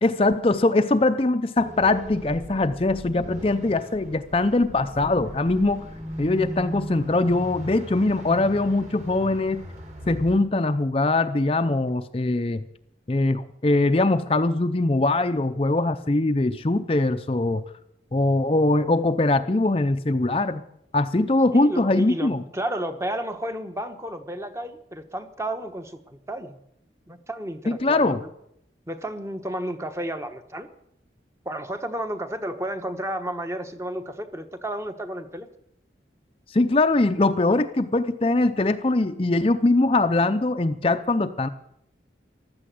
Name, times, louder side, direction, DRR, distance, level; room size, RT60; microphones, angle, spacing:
voice 1, 0.0-5.9 6.2-9.7 10.1-12.6 13.1-17.6 18.1-20.6 20.9-22.4 27.7-28.2 36.5-41.5, left 2 dB, 30° left, 9 dB, 0.5 m, -22 dB
sound 1, 1.6-10.4, equal, 40° right, 3.1 m, -38 dB
voice 2, 21.5-26.6 27.1-28.3 28.9-30.7 31.4-35.5, right 1 dB, 15° right, 7 dB, 1.1 m, -32 dB
15.0 x 12.5 x 7.7 m, 0.76 s
head